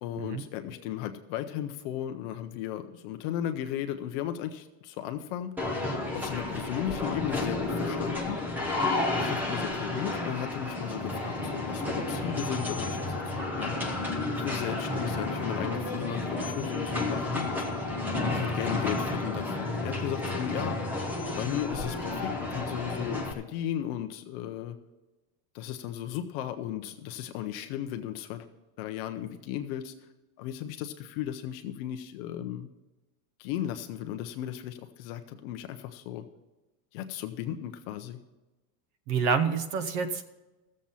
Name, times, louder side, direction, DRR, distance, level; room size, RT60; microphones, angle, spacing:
voice 1, 0.0-5.5 6.1-8.4 9.2-13.8 14.3-17.7 18.3-20.8 21.4-24.8 25.5-28.5 28.8-29.9 30.4-32.7 33.4-36.2 36.9-38.2, left 11 dB, 40° left, 7 dB, 0.6 m, -35 dB
sound 1, 5.6-23.3, left 2 dB, 5° right, 0.4 m, -31 dB
voice 2, 39.1-40.2, right 6 dB, 50° right, 11 dB, 1.0 m, -27 dB
14.5 x 7.5 x 5.5 m, 1.1 s
supercardioid pair, 170°, 46 cm